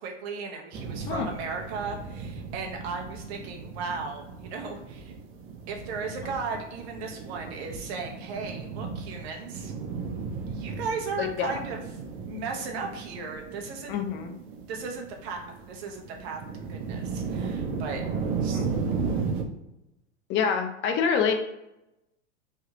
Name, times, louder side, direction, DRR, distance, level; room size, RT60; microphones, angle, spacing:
voice 1, 0.0-5.1 5.7-9.7 10.5-11.8 12.3-14.0 14.7-15.4 15.7-16.4 16.7-18.1 18.4-18.6, right 4 dB, 60° right, 1 dB, 0.9 m, -36 dB
sound 1, 0.7-19.4, right 5 dB, 35° right, 0.6 m, -35 dB
voice 2, 11.2-11.6 13.9-14.4 18.5-18.8 20.3-21.3, left 6 dB, 35° left, 5 dB, 0.5 m, -27 dB
3.4 x 2.3 x 2.9 m, 0.92 s
hypercardioid pair, 95°, 36 cm